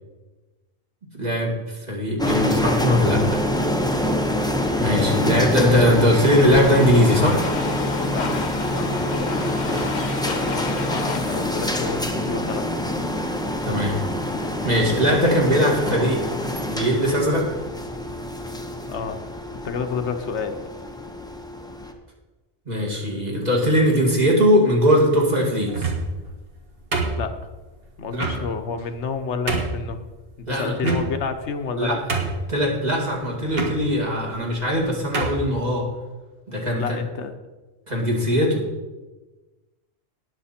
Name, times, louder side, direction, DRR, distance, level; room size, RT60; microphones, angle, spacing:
voice 1, 1.1-3.4 4.8-7.4 13.6-14.0 14.6-16.2 16.7-17.4 22.7-25.9 28.1-28.3 30.5-30.9 31.8-32.0 32.5-35.8 36.5-37.0 37.9-38.6, equal, 35° right, -2 dB, 2.4 m, -20 dB
sound 1, 2.2-21.9, left 1 dB, 5° left, 0.8 m, -26 dB
Domestic sounds home sounds, 6.0-12.9, left 5 dB, 45° left, 0.8 m, -35 dB
voice 2, 8.7-12.7 18.9-19.2 19.6-20.5 27.2-27.3 28.0-30.0 30.5-32.0 36.8-37.3 38.4-38.5, left 5 dB, 80° left, 8 dB, 1.3 m, -30 dB
sound 2, 25.7-26.2 26.9-27.6 28.2-28.4 29.0-29.1 29.5-29.8 30.8-31.4 31.7-31.8 32.1-32.6 33.5-33.7 34.6-34.7 35.1-35.4, right 4 dB, 60° right, 1.8 m, -26 dB
18.5 x 6.6 x 4.4 m, 1.2 s
omnidirectional pair, 1.2 m